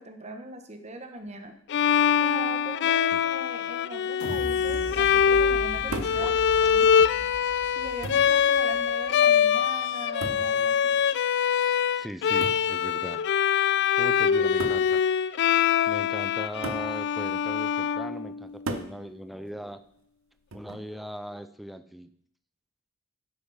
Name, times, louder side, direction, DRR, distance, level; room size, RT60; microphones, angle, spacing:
voice 1, 0.0-1.5 2.2-6.9 7.8-11.0, right 2 dB, 30° right, 6 dB, 1.3 m, -40 dB
Bowed string instrument, 1.7-18.6, left 8 dB, 55° left, 0.4 m, -24 dB
sound 1, 4.2-9.1 9.5-9.6, equal, 80° left, 4.6 m, -39 dB
voice 2, 5.9-6.4 6.9-7.1 11.9-13.2 13.5-15.0 15.9-19.8 20.5-22.1, equal, ahead, 11 dB, 0.6 m, -39 dB
sound 2, 5.9-6.3 7.3-7.4 8.0-8.4 10.2-10.6 12.4-12.7 13.8-13.9 14.6-14.9 16.6-16.9 18.7-19.0 20.5-20.9, right 2 dB, 75° right, 1.0 m, -35 dB
9.8 x 8.3 x 5.6 m, 0.67 s
head